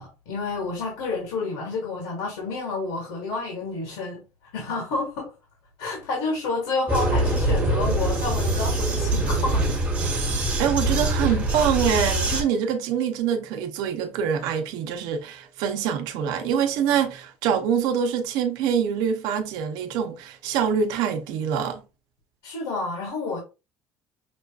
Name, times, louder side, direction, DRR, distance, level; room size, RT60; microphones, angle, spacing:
voice 1, 0.0-4.2 4.5-5.3 5.8-9.8 22.4-23.4, left 3 dB, 80° left, 1.9 m, -29 dB
Vehicle, 6.9-12.4, right 1 dB, 20° right, 1.3 m, -23 dB
voice 2, 10.6-21.8, right 8 dB, 70° right, 0.7 m, -25 dB
6.1 x 2.4 x 2.3 m
cardioid pair, 145°, 7 cm